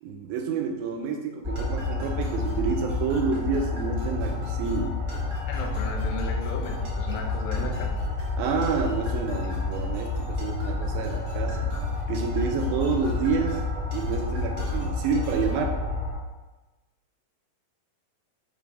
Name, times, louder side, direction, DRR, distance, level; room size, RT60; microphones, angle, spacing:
voice 1, 0.0-5.0 8.4-11.7 12.1-13.6 13.9-15.8, right 5 dB, 85° right, 4 dB, 2.5 m, -29 dB
sound 1, 1.4-16.1, left 3 dB, 25° right, 1.2 m, -29 dB
sound 2, 1.6-15.6, right 1 dB, 60° right, 2.1 m, -42 dB
voice 2, 5.5-8.0, left 4 dB, 70° left, 0 dB, 2.1 m, -35 dB
5.5 x 3.4 x 5.1 m, 1.2 s
omnidirectional pair, 4.1 m